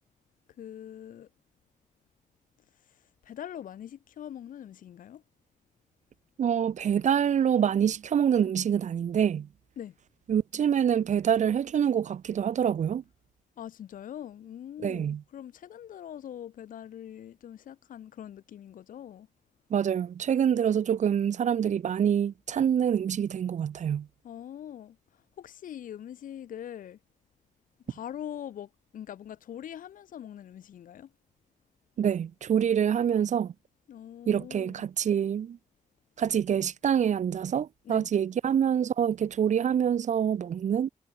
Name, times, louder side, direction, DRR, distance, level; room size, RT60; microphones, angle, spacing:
voice 1, 0.6-1.3 2.9-5.2 9.8-9.9 13.6-19.3 24.2-27.0 27.9-31.1 33.9-34.8 37.9-38.1, left 10 dB, 80° left, 0.4 m, -43 dB
voice 2, 6.4-9.5 10.3-13.0 14.8-15.2 19.7-24.1 32.0-33.5 34.3-35.6 36.2-40.9, right 8 dB, 60° right, 0.4 m, -26 dB
wide cardioid pair, 105°, 14 cm